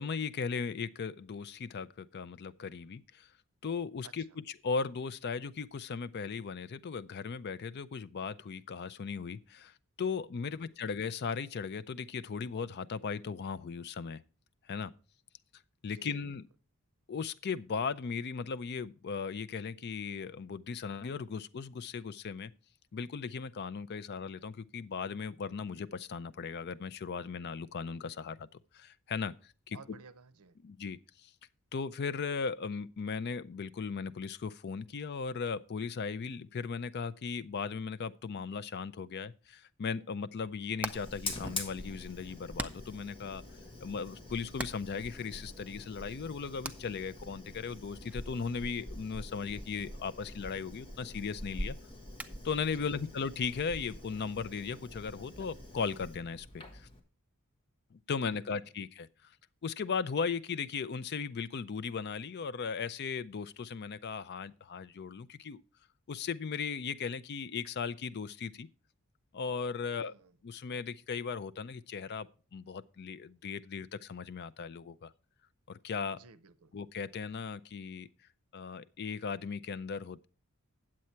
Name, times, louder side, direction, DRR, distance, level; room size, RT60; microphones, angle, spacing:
voice 1, 0.0-3.3 3.6-14.2 14.7-14.9 15.8-16.5 17.1-22.5 22.9-28.5 28.7-29.8 30.6-31.3 31.7-43.4 43.8-51.8 52.4-56.9 57.9-59.3 59.6-65.6 66.1-68.7 69.3-70.1 70.4-75.1 75.7-76.2 76.7-78.1 78.5-80.3, left 5 dB, 50° left, 0.4 m, -37 dB
voice 2, 10.4-10.8 15.9-16.3 29.7-30.6 52.7-52.9 58.3-58.4 69.9-70.3 76.1-76.7, right 4 dB, 75° right, 0.7 m, -55 dB
Hammer, 40.3-55.5, right 2 dB, 5° right, 0.5 m, -49 dB
Fire, 40.9-57.0, left 1 dB, 25° left, 1.5 m, -45 dB
9.4 x 7.6 x 4.4 m
head